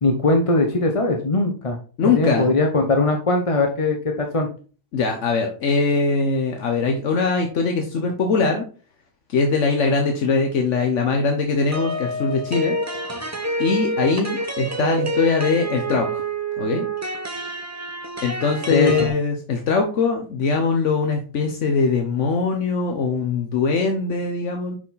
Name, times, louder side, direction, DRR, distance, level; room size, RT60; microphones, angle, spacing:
voice 1, 0.0-4.5 18.7-19.1, left 2 dB, 30° left, 3 dB, 0.7 m, -20 dB
voice 2, 2.0-2.5 4.9-8.6 9.3-12.8 13.6-16.2 16.6-16.9 18.2-24.8, left 4 dB, 75° left, 4 dB, 1.2 m, -21 dB
sound 1, 11.7-19.1, right 2 dB, 20° right, 0.5 m, -27 dB
6.0 x 4.6 x 4.0 m, 0.38 s
omnidirectional pair, 1.3 m